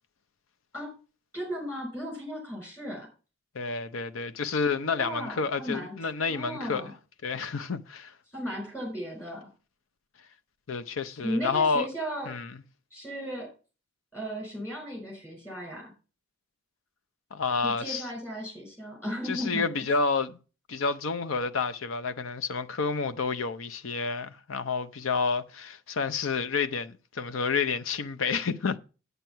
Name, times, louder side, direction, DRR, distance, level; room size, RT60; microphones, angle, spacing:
voice 1, 1.3-3.1 5.0-5.9 6.3-6.9 8.3-9.5 11.2-12.3 12.9-13.5 14.1-15.9 17.6-19.7, equal, 10° left, 5.4 m, -35 dB
voice 2, 3.5-6.9 7.2-8.1 10.7-11.9 12.3-12.5 17.3-18.0 19.2-20.4 20.7-28.8, left 4 dB, 80° left, 0.7 m, -29 dB
8.1 x 7.7 x 5.6 m
head